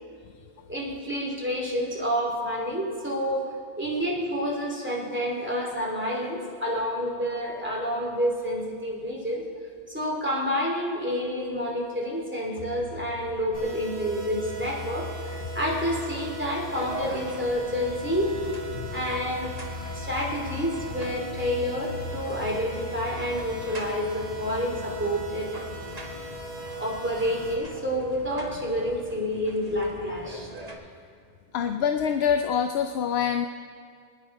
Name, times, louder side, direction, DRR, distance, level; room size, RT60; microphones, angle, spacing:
voice 1, 0.7-9.4 9.9-18.5 18.9-19.5 19.9-25.6 26.7-30.5, equal, 10° right, -3 dB, 2.8 m, -29 dB
sound 1, 12.6-29.0, left 4 dB, 50° left, 0.8 m, -41 dB
sound 2, 13.5-27.5, right 4 dB, 10° left, 4.2 m, -40 dB
sound 3, 16.7-30.7, right 1 dB, 40° right, 1.7 m, -43 dB
voice 2, 31.5-33.5, left 8 dB, 80° left, 7 dB, 0.9 m, -25 dB
24.5 x 9.9 x 4.8 m, 2.2 s
omnidirectional pair, 1.1 m